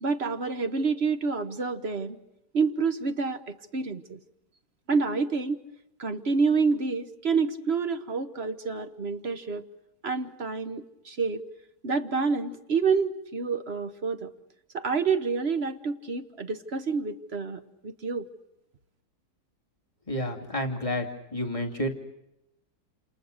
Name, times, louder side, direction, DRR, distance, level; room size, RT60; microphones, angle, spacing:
voice 1, 0.0-2.2 2.5-4.2 4.9-5.6 6.0-9.6 10.0-11.4 11.8-14.3 14.7-18.3, right 4 dB, 40° right, 9 dB, 1.1 m, -28 dB
voice 2, 20.1-21.1 21.3-21.9, left 1 dB, 15° left, 0 dB, 2.7 m, -29 dB
28.0 x 27.5 x 6.6 m, 0.88 s
omnidirectional pair, 2.0 m